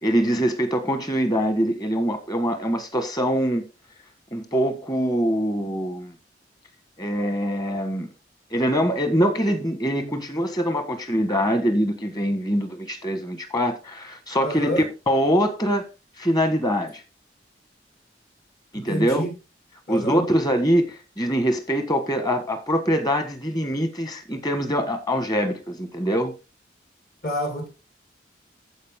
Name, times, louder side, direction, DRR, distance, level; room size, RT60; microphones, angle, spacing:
voice 1, 0.0-3.6 4.3-6.1 7.0-8.1 8.5-14.7 15.1-15.9 16.2-17.0 18.7-19.2 19.9-26.3, equal, 20° left, 1.5 m, -23 dB
voice 2, 14.4-14.8 18.7-19.3 19.9-20.2 27.2-27.7, equal, 55° left, 3.9 m, -28 dB
14.5 x 5.2 x 3.7 m
head